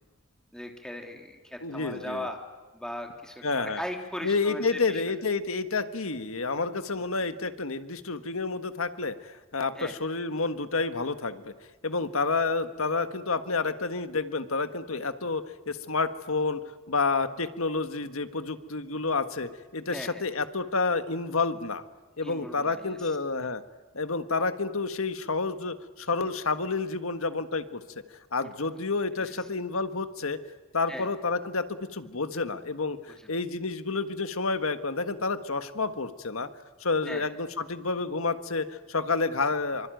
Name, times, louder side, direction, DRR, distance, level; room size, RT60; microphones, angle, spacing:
voice 1, 0.5-2.4 2.7-5.0 9.8-9.9 19.9-20.2 22.2-23.0 28.4-28.5 29.2-29.3 30.9-31.1 37.1-37.3, left 1 dB, 5° left, 2 dB, 3.1 m, -38 dB
voice 2, 1.6-2.3 3.4-3.8 4.2-11.5 11.8-16.6 16.9-21.8 22.2-23.6 23.9-27.8 28.3-30.4 30.7-33.0 33.3-36.5 36.8-39.9, left 4 dB, 80° left, 10 dB, 1.6 m, -29 dB
26.0 x 25.0 x 9.3 m, 1.2 s
head